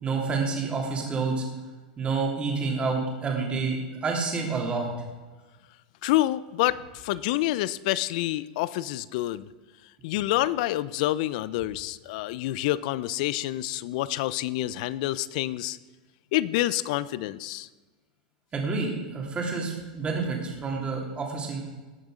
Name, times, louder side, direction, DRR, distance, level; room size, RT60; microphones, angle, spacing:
voice 1, 0.0-1.4 2.0-4.9 18.5-21.6, right 4 dB, 20° right, 0 dB, 3.2 m, -28 dB
voice 2, 6.0-9.5 10.0-15.8 16.3-17.7, left 15 dB, 60° left, 19 dB, 0.5 m, -27 dB
18.0 x 6.6 x 5.1 m, 1.3 s
hypercardioid pair, 120°, 5 cm